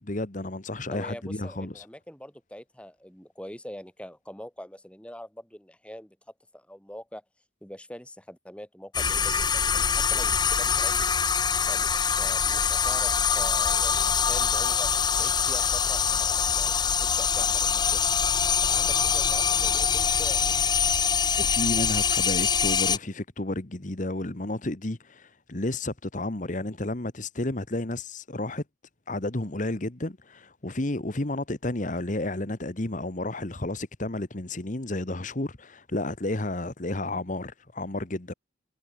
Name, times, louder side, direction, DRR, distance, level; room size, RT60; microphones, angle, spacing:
voice 1, 0.1-1.8 21.4-28.6 29.1-38.3, left 2 dB, 45° left, 1.4 m, -32 dB
voice 2, 0.9-6.2 6.5-7.2 7.6-11.1 11.7-16.7 17.0-18.0 18.6-20.6, equal, 5° left, 3.3 m, -43 dB
sound 1, 8.9-23.0, left 7 dB, 25° left, 0.7 m, -24 dB
head